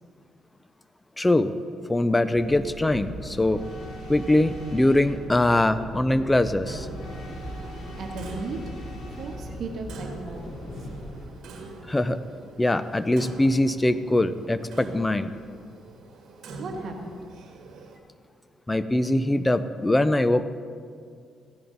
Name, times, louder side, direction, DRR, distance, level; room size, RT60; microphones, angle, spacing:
voice 1, 1.2-1.5 1.9-3.6 4.1-6.9 11.9-12.2 12.6-15.3 18.7-20.4, left 1 dB, 15° left, 12 dB, 0.6 m, -22 dB
sound 1, 2.3-11.3, equal, 70° left, 3.2 m, -39 dB
Clock, 6.7-18.0, right 3 dB, 75° right, 1.5 m, -44 dB
voice 2, 8.0-8.6 9.2-10.9 16.6-17.3, right 3 dB, 60° right, 2 dB, 1.4 m, -36 dB
16.0 x 10.0 x 4.0 m, 2.2 s
cardioid pair, 90°, 0 cm